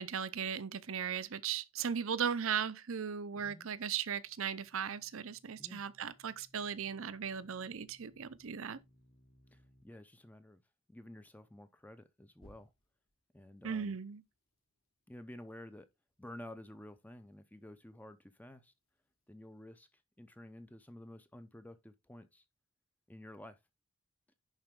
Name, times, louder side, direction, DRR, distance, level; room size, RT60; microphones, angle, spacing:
voice 1, 0.0-8.8 13.6-14.2, right 7 dB, 65° right, 0.6 m, -37 dB
voice 2, 3.3-3.7 5.6-5.8 9.5-10.6 10.9-12.7 13.3-14.0 15.1-15.9 16.2-18.7 19.3-19.9 20.2-22.4 23.1-23.6, left 1 dB, 5° left, 0.6 m, -52 dB
sound 1, 4.0-9.8 12.3-13.1, equal, 70° left, 2.9 m, -66 dB
10.5 x 4.3 x 3.7 m
head